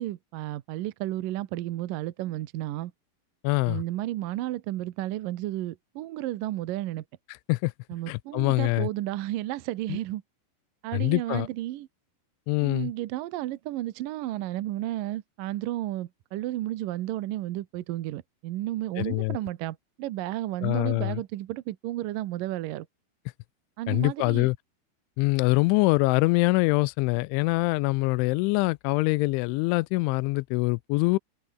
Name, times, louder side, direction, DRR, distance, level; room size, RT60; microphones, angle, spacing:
voice 1, 0.0-2.9 3.7-7.0 7.9-10.2 10.8-11.9 12.6-22.9 23.8-24.5, right 15 dB, 75° right, 2.0 m, -32 dB
voice 2, 3.4-3.8 7.5-7.7 8.1-8.9 9.9-10.0 10.9-11.5 12.5-12.9 19.0-19.4 20.6-21.2 23.9-24.6 25.2-31.2, left 24 dB, 85° left, 3.0 m, -24 dB
open air
omnidirectional pair, 5.4 m